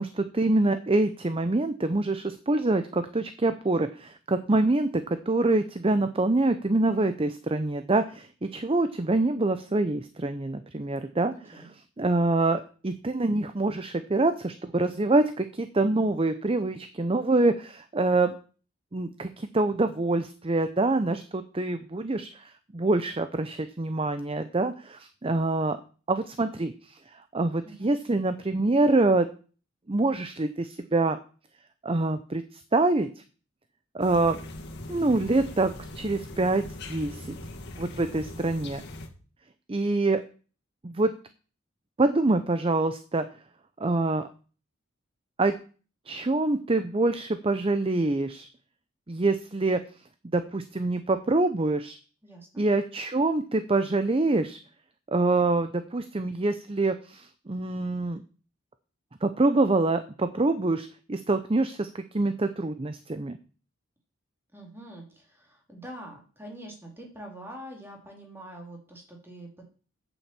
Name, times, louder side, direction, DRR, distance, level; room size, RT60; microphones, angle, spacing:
voice 1, 0.0-11.6 12.0-18.3 18.9-25.8 26.1-29.3 29.9-31.2 31.8-33.1 33.9-34.4 34.9-36.6 36.9-37.4 37.8-38.8 39.7-40.2 40.8-41.1 42.0-43.2 43.8-44.3 45.4-45.5 46.1-48.5 49.1-49.8 50.3-52.0 52.6-54.6 55.1-58.2 59.2-63.4, right 2 dB, 25° right, 10 dB, 0.6 m, -25 dB
sound 1, 34.0-39.1, left 1 dB, 55° left, 2.0 m, -41 dB
voice 2, 52.2-52.6 64.5-69.7, right 1 dB, 10° right, 0 dB, 3.0 m, -44 dB
8.8 x 7.1 x 7.5 m, 0.39 s
head